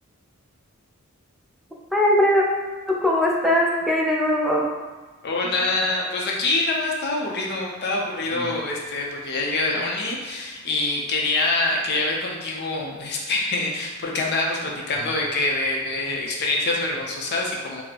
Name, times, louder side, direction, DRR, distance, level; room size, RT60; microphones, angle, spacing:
voice 1, 1.9-2.4 3.0-4.6 8.3-8.5, left 1 dB, ahead, -3 dB, 0.4 m, -20 dB
voice 2, 5.2-17.8, left 2 dB, 50° left, -1 dB, 0.5 m, -25 dB
4.2 x 2.0 x 2.8 m, 1.3 s
head